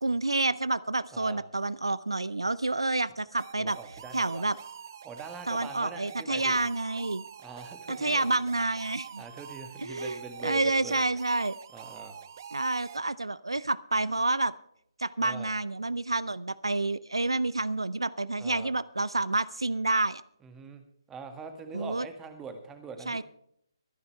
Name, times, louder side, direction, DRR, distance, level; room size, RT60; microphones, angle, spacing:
voice 1, 0.0-3.8 4.1-4.6 5.5-7.2 7.9-9.2 9.8-11.6 12.5-14.5 15.0-20.2 21.7-22.1 23.1-23.2, right 2 dB, 85° right, 19 dB, 0.6 m, -29 dB
voice 2, 1.1-1.4 3.6-4.5 5.0-6.6 7.4-8.2 9.2-11.0 11.7-12.2 15.2-15.5 18.4-18.8 20.4-20.8 21.1-23.2, right 4 dB, 10° right, 7 dB, 1.9 m, -43 dB
sound 1, 3.4-13.0, right 8 dB, 45° right, 0.6 m, -46 dB
24.0 x 10.5 x 3.3 m, 0.71 s
figure-of-eight pair, 145°, 3 cm